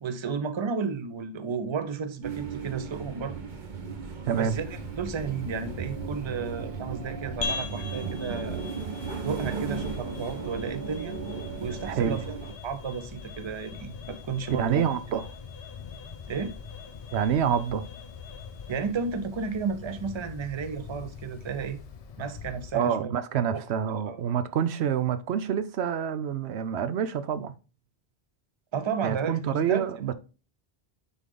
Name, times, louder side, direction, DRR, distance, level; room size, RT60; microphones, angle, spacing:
voice 1, 0.0-3.4 4.4-8.6 9.2-11.1 11.6-12.4 12.6-14.8 16.3-16.5 18.7-21.8 22.2-23.1 23.5-23.6 24.1-24.2 28.7-29.9, right 5 dB, 35° right, 0.6 m, -32 dB
sound 1, 2.2-12.5, right 5 dB, 50° right, 1.0 m, -36 dB
Wind, 4.3-22.7, left 6 dB, 40° left, 0.7 m, -45 dB
voice 2, 4.3-4.6 11.9-12.2 14.6-15.3 17.1-17.8 22.7-27.5 29.0-30.1, right 8 dB, 80° right, 0.9 m, -27 dB
sound 2, 7.4-22.0, left 5 dB, 70° left, 0.9 m, -43 dB
9.7 x 3.6 x 3.7 m
omnidirectional pair, 1.1 m